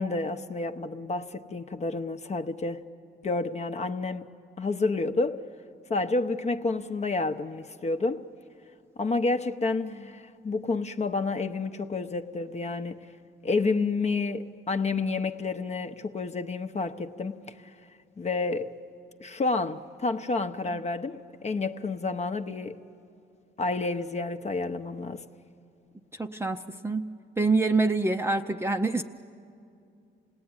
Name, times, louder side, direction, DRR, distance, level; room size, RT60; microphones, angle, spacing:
voice 1, 0.0-2.8 3.2-4.3 4.6-5.4 5.9-8.2 9.0-13.1 13.4-17.7 18.2-18.7 19.2-22.8 23.6-25.2, left 3 dB, 35° left, 0.8 m, -29 dB
voice 2, 26.1-27.1 27.4-29.0, right 3 dB, 10° right, 0.6 m, -26 dB
27.0 x 18.5 x 9.6 m
cardioid pair, 90°, 20 cm